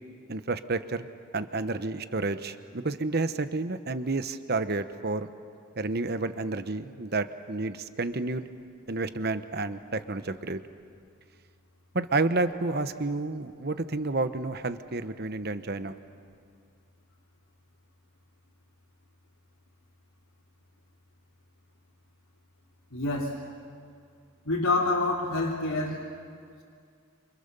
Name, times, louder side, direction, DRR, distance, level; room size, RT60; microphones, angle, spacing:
voice 1, 0.3-1.1 1.3-5.3 5.8-8.4 8.9-10.6 11.9-16.0, right 3 dB, 45° right, 10 dB, 1.0 m, -30 dB
voice 2, 22.9-23.3 24.4-26.0, left 2 dB, 90° left, -5 dB, 3.1 m, -27 dB
28.5 x 27.5 x 6.9 m, 2.3 s
head